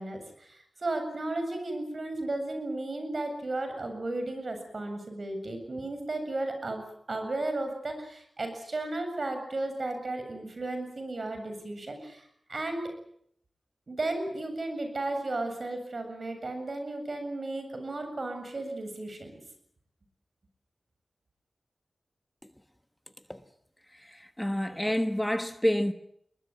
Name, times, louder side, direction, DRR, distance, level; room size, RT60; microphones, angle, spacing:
voice 1, 0.0-12.9 13.9-19.3, right 2 dB, 55° right, 7.6 m, -34 dB
voice 2, 23.9-25.9, left 1 dB, 10° left, 1.2 m, -28 dB
22.5 x 21.0 x 9.4 m
wide cardioid pair, 75°, 0 cm